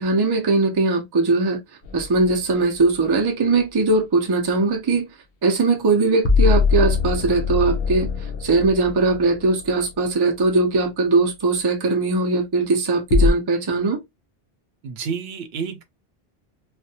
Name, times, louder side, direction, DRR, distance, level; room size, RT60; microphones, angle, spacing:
voice 1, 0.0-1.6 1.9-5.1 5.4-8.1 8.4-14.0, right 3 dB, 30° right, 0.5 m, -20 dB
sound 1, 1.8-2.4 6.2-9.6 13.1-13.3, left 5 dB, 70° left, 0.8 m, -21 dB
voice 2, 14.8-15.8, right 6 dB, 75° right, 0.8 m, -29 dB
2.4 x 2.1 x 2.7 m
omnidirectional pair, 1.1 m